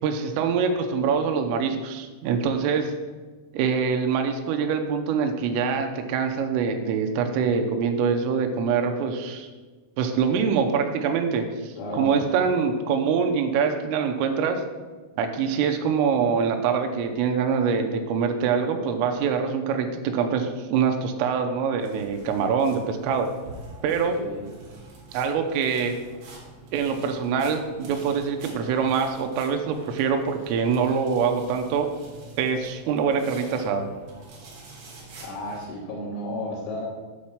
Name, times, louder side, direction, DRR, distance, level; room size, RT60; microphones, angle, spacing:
voice 1, 0.0-2.9 3.5-9.5 10.0-14.6 15.2-23.3 23.8-24.2 25.1-26.0 26.7-31.9 32.4-33.9, right 6 dB, 90° right, 5 dB, 3.4 m, -24 dB
voice 2, 11.8-12.2 24.1-24.5 35.2-36.8, left 1 dB, 75° left, -7 dB, 3.8 m, -33 dB
sound 1, 21.8-35.7, right 2 dB, 65° right, 4.1 m, -46 dB
9.0 x 4.3 x 7.1 m, 1.3 s
omnidirectional pair, 5.7 m